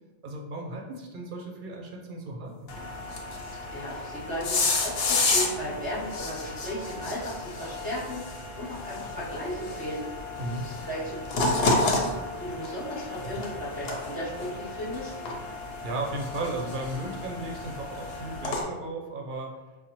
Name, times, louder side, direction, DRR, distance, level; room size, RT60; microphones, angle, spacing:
voice 1, 0.2-2.8 10.4-10.6 15.8-19.5, right 2 dB, 55° right, 0 dB, 0.7 m, -35 dB
sound 1, 2.7-18.6, left 3 dB, 75° left, 0.9 m, -31 dB
voice 2, 3.7-10.0 10.6-12.1 12.4-15.2, equal, 10° right, -9 dB, 1.0 m, -35 dB
5.1 x 2.1 x 2.9 m, 1.2 s
omnidirectional pair, 1.1 m